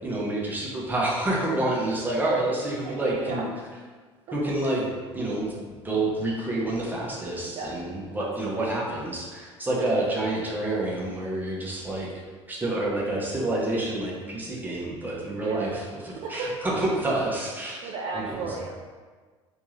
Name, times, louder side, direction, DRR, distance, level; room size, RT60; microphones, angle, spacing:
voice 1, 0.0-3.5 4.3-5.5 5.8-12.1 12.5-17.8 18.1-18.5, right 2 dB, 10° right, -4 dB, 0.9 m, -28 dB
voice 2, 2.8-3.4 7.4-7.7 8.2-8.3 9.8-9.9 15.3-15.8 16.2-16.5 17.8-18.7, right 3 dB, 40° right, -2 dB, 0.4 m, -34 dB
3.4 x 2.7 x 3.1 m, 1.4 s
figure-of-eight pair, 65°, 15 cm